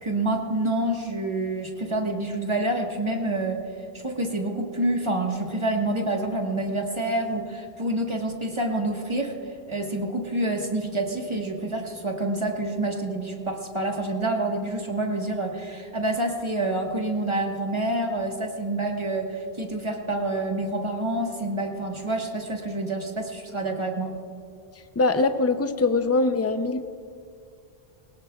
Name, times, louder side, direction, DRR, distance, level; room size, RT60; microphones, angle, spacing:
voice 1, 0.0-3.6 3.9-9.3 9.7-24.1, right 1 dB, 30° right, 1 dB, 1.4 m, -27 dB
voice 2, 25.0-26.8, left 3 dB, 20° left, 9 dB, 0.4 m, -22 dB
21.0 x 18.5 x 2.3 m, 2.3 s
omnidirectional pair, 1.0 m